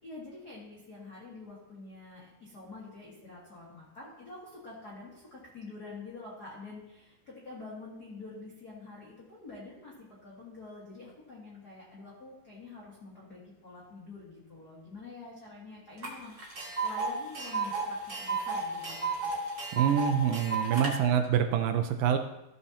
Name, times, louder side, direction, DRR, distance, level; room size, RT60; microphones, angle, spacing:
voice 1, 0.0-19.3, left 3 dB, 75° left, -6 dB, 0.8 m, -47 dB
Tick, 16.0-16.1 16.4-20.9, right 4 dB, 55° right, 1.1 m, -33 dB
voice 2, 19.7-22.2, right 9 dB, 85° right, 7 dB, 2.0 m, -26 dB
14.5 x 7.0 x 2.8 m, 0.91 s
omnidirectional pair, 4.6 m